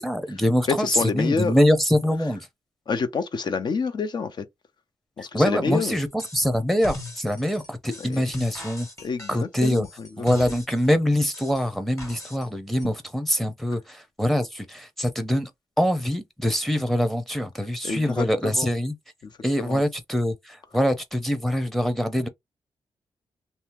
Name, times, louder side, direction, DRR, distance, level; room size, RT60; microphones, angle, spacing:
voice 1, 0.0-2.5 5.3-8.9 9.3-9.8 10.2-15.5 15.8-18.9 19.4-22.3, equal, ahead, 0.7 m, -24 dB
voice 2, 0.8-1.5 2.9-4.4 5.2-6.0 8.1-8.2 9.0-10.3 17.8-18.7 19.7-19.8, left 5 dB, 50° left, 0.7 m, -28 dB
sound 1, 6.2-6.5 6.8-10.9 11.3-12.5 12.8-12.9, left 2 dB, 35° left, 1.6 m, -39 dB
2.7 x 2.0 x 3.4 m
cardioid pair, 65°, 9 cm